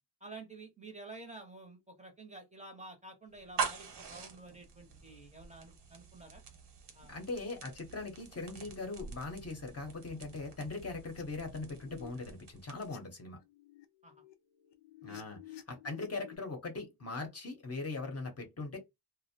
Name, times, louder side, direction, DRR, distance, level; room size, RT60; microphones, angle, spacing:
voice 1, 0.2-6.4 6.9-7.1 14.0-14.2 15.1-15.2 15.7-15.8, right 2 dB, 20° right, 0.6 m, -50 dB
sound 1, 3.3-13.1, right 6 dB, 85° right, 0.9 m, -44 dB
voice 2, 7.1-13.4 15.0-18.8, left 3 dB, 35° left, 0.7 m, -40 dB
sound 2, 11.0-11.2 11.7-12.1 12.6-13.0 13.3-16.4, left 14 dB, 85° left, 0.5 m, -53 dB
2.4 x 2.0 x 2.7 m
wide cardioid pair, 120°, 40 cm